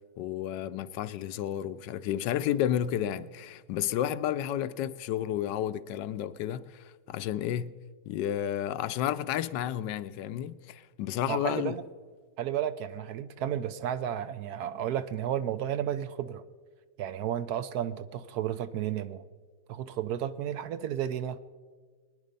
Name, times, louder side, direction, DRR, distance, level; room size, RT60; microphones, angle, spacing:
voice 1, 0.2-7.8 8.1-11.8, left 11 dB, 80° left, 1.2 m, -31 dB
voice 2, 11.3-11.8 12.4-16.4 17.0-19.2 19.7-21.4, right 10 dB, 70° right, 1.0 m, -32 dB
22.0 x 10.0 x 5.3 m
omnidirectional pair, 1.9 m